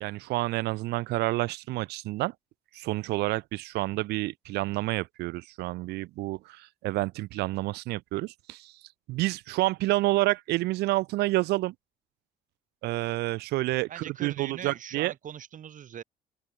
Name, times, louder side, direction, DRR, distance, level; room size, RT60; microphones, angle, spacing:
voice 1, 0.0-2.3 2.7-8.7 9.1-11.7 12.8-15.1, right 19 dB, 80° right, 0.6 m, -29 dB
voice 2, 13.9-16.0, right 9 dB, 50° right, 4.7 m, -41 dB
open air
cardioid pair, 110°, 17 cm